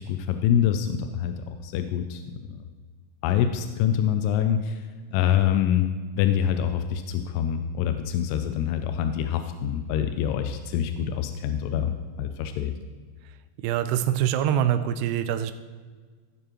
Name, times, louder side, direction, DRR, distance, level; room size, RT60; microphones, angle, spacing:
voice 1, 0.0-2.2 2.5-2.6 3.2-4.8 5.1-5.9 6.2-12.7, left 9 dB, 85° left, 8 dB, 2.7 m, -25 dB
voice 2, 13.6-15.5, right 10 dB, 90° right, 11 dB, 2.7 m, -24 dB
16.0 x 6.8 x 3.0 m, 1.5 s
omnidirectional pair, 4.7 m